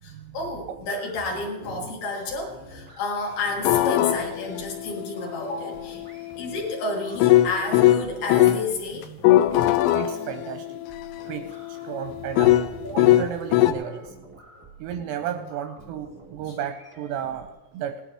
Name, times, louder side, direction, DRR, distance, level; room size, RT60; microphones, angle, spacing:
voice 1, 0.0-6.0 6.4-9.1 12.1-12.2 12.4-12.6 14.5-14.6, left 3 dB, 60° left, -1 dB, 3.4 m, -31 dB
sound 1, 0.6-17.5, right 3 dB, 30° right, 0.5 m, -48 dB
sound 2, 3.6-8.6 9.0-13.7, left 14 dB, 85° left, 2.9 m, -22 dB
voice 2, 9.9-10.8 11.2-12.5 12.8-14.1 14.8-18.0, right 9 dB, 85° right, 7 dB, 2.5 m, -33 dB
19.0 x 11.5 x 3.5 m, 1.1 s
omnidirectional pair, 5.3 m